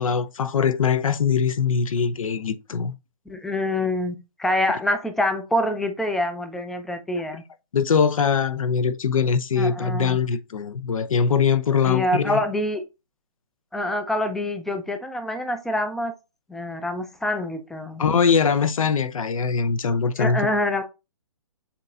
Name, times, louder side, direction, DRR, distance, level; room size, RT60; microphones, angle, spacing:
voice 1, 0.0-2.9 7.7-12.4 18.0-20.4, left 6 dB, 70° left, 0.7 m, -22 dB
voice 2, 3.3-7.4 9.6-10.2 11.8-12.8 13.7-16.1 16.5-18.0 20.2-20.8, left 1 dB, ahead, 0.4 m, -26 dB
7.4 x 2.9 x 2.4 m
figure-of-eight pair, 135°, 18 cm